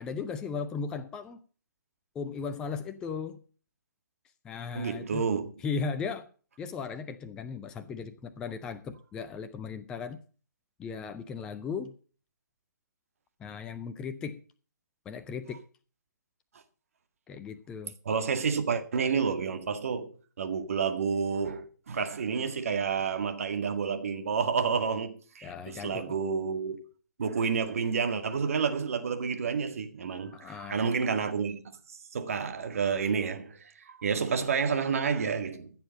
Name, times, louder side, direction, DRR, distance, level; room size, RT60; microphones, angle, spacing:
voice 1, 0.0-1.4 2.1-3.4 4.4-5.2 5.6-6.3 6.6-10.2 10.8-11.9 13.4-14.4 15.1-15.6 17.3-17.9 25.4-26.2 30.3-30.9, left 5 dB, 5° left, 0.4 m, -37 dB
voice 2, 4.7-5.5 18.1-20.1 20.4-26.8 27.2-31.6 31.9-35.7, right 6 dB, 45° right, 1.9 m, -30 dB
15.5 x 7.2 x 5.2 m
figure-of-eight pair, 140°, 10 cm